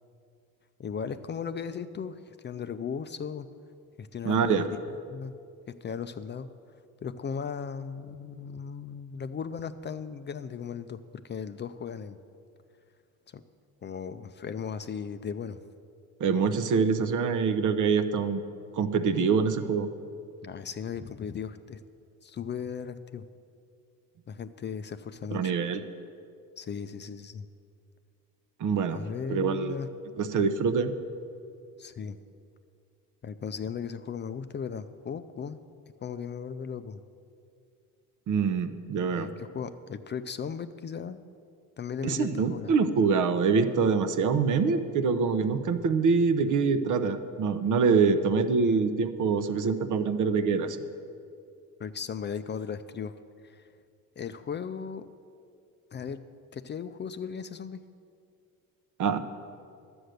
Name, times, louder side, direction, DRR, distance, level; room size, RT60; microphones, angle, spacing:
voice 1, 0.8-3.5 4.0-4.7 5.1-5.3 5.8-6.5 7.0-11.0 11.2-12.2 13.3-13.4 13.8-15.6 20.4-21.8 22.2-23.2 24.3-25.5 26.6-27.5 28.9-29.9 31.8-32.2 33.2-35.6 36.0-37.0 39.1-41.2 41.8-42.7 51.8-53.1 53.4-53.7 54.2-55.1 55.9-56.2 56.5-57.8, left 6 dB, 30° left, 11 dB, 0.4 m, -36 dB
voice 2, 4.2-4.6 16.2-18.4 18.7-19.9 25.3-25.8 28.6-29.0 29.3-29.8 30.2-30.9 38.3-39.3 42.0-50.8 59.0-59.2, right 5 dB, 60° right, 10 dB, 0.8 m, -25 dB
11.5 x 7.9 x 6.5 m, 2.4 s
cardioid pair, 95°, 35 cm